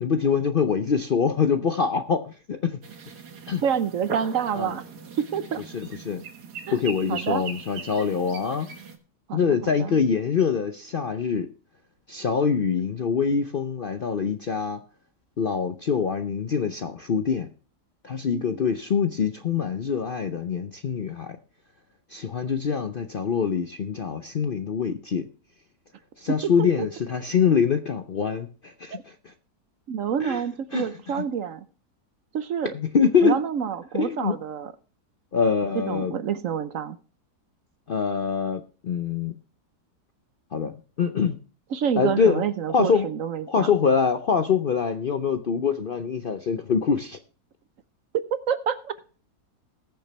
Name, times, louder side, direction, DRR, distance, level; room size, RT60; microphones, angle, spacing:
voice 1, 0.0-2.8 3.5-3.6 4.5-4.7 5.7-6.2 6.7-8.7 9.3-11.5 12.1-14.8 15.4-17.5 18.0-21.4 22.1-25.3 26.2-29.1 30.2-30.4 30.7-30.9 31.2-31.3 32.6-33.4 33.9-34.3 35.3-36.1 37.9-39.4 40.5-41.4 42.0-42.4 42.7-43.1 43.5-47.2, left 6 dB, 55° left, 0.6 m, -24 dB
sound 1, 2.8-9.0, right 5 dB, 80° right, 2.0 m, -40 dB
voice 2, 3.6-4.8 5.2-5.6 6.7-6.8 7.1-7.4 9.3-10.0 18.3-18.5 26.3-26.9 28.9-29.0 29.9-31.6 32.3-32.7 33.2-34.7 35.7-37.0 41.7-43.7 48.3-48.9, right 8 dB, 60° right, 1.0 m, -28 dB
20.0 x 7.0 x 3.2 m
omnidirectional pair, 1.7 m